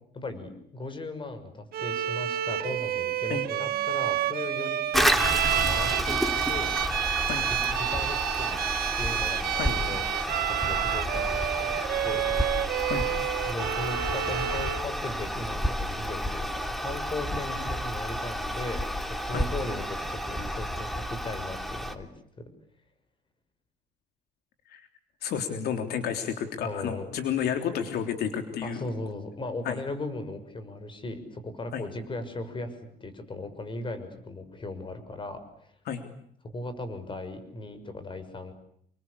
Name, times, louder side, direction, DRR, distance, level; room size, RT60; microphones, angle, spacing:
voice 1, 0.1-6.2 6.5-6.7 7.4-8.6 8.9-10.0 10.5-11.8 12.0-12.3 13.5-18.9 19.2-22.1 22.4-22.5 26.6-27.1 28.6-35.7 36.4-38.5, left 2 dB, 30° left, 10 dB, 6.4 m, -37 dB
Bowed string instrument, 1.7-14.9, right 11 dB, 65° right, 1.6 m, -29 dB
Toilet flush, 4.9-22.0, equal, ahead, 2.9 m, -30 dB
voice 2, 25.2-28.9 29.6-29.8 31.7-31.9 35.9-36.0, left 8 dB, 70° left, 7 dB, 3.4 m, -31 dB
29.0 x 24.0 x 8.5 m, 0.69 s
cardioid pair, 110°, 17 cm